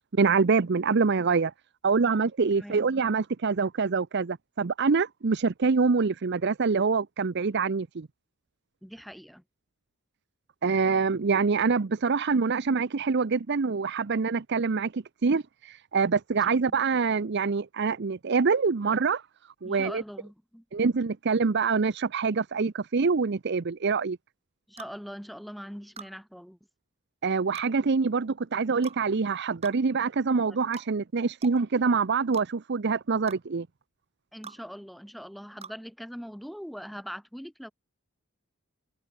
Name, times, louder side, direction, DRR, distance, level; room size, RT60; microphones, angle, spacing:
voice 1, 0.1-1.5 1.8-8.1 10.6-19.2 19.6-20.0 20.7-24.2 27.2-33.7, right 4 dB, 55° right, 0.6 m, -25 dB
voice 2, 8.8-9.4 16.5-16.7 19.6-20.6 24.7-26.6 30.5-30.6 34.3-37.7, equal, ahead, 6.6 m, -42 dB
sound 1, 24.8-25.0 26.0-26.1 27.5-27.7 28.8-29.0 29.6-29.8 30.7-30.9 31.4-31.6 32.3-32.5 33.3-33.4 34.4-34.6 35.6-35.8, right 5 dB, 30° right, 5.2 m, -43 dB
open air
head